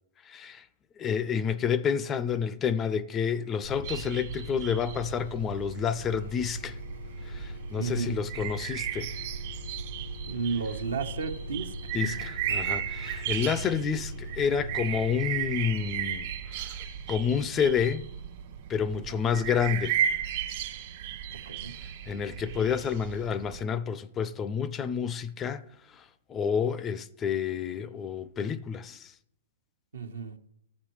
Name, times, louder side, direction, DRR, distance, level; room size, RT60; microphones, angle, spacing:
voice 1, 0.2-0.7 1.0-6.8 7.2-9.1 11.9-18.0 18.7-20.0 22.1-25.6 25.9-29.1, left 7 dB, 20° left, 0.4 m, -29 dB
sound 1, 3.6-17.1, left 1 dB, 85° left, 0.6 m, -41 dB
sound 2, 3.8-23.6, right 9 dB, 50° right, 1.5 m, -35 dB
voice 2, 7.8-8.2 10.3-11.7 12.0-12.3 19.1-19.3 21.3-21.7 29.9-30.4, right 5 dB, 75° right, 1.1 m, -33 dB
14.0 x 6.4 x 3.1 m
hypercardioid pair, 120°, 0 cm